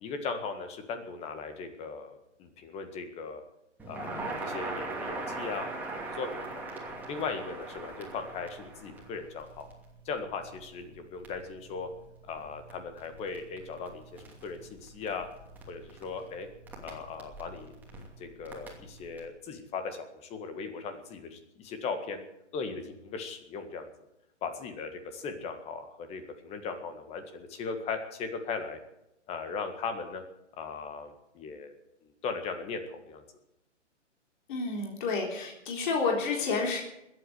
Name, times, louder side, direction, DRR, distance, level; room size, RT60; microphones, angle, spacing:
voice 1, 0.0-3.4 3.9-6.6 7.1-9.7 10.1-11.9 12.2-15.3 15.7-16.5 16.8-22.2 22.5-23.9 24.4-28.8 29.3-30.2 30.6-33.2, left 5 dB, 15° left, 8 dB, 1.8 m, -38 dB
Crackle, 3.8-19.3, right 3 dB, 5° right, 2.8 m, -42 dB
voice 2, 34.5-36.8, left 4 dB, 40° left, 0 dB, 3.9 m, -30 dB
21.0 x 8.7 x 7.9 m, 0.86 s
hypercardioid pair, 145°, 37 cm